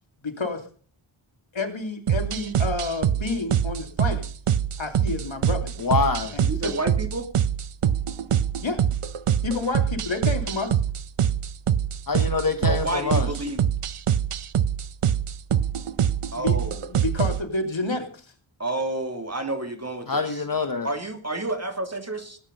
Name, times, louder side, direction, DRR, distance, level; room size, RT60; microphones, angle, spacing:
voice 1, 0.2-0.6 1.5-4.2 4.8-5.7 6.3-6.7 8.6-8.8 9.4-10.7 16.4-16.6 16.9-18.1, left 3 dB, 65° left, 5 dB, 3.0 m, -29 dB
sound 1, 2.1-17.4, right 9 dB, 85° right, 0.8 m, -24 dB
voice 2, 5.8-6.4 12.1-13.3 20.1-20.9, left 4 dB, 40° left, 8 dB, 1.3 m, -25 dB
voice 3, 6.5-7.3 12.7-13.6 16.3-16.8 18.6-20.4 20.8-22.4, right 2 dB, 30° right, 6 dB, 2.8 m, -30 dB
19.0 x 9.8 x 5.3 m, 0.44 s
wide cardioid pair, 80°, 50 cm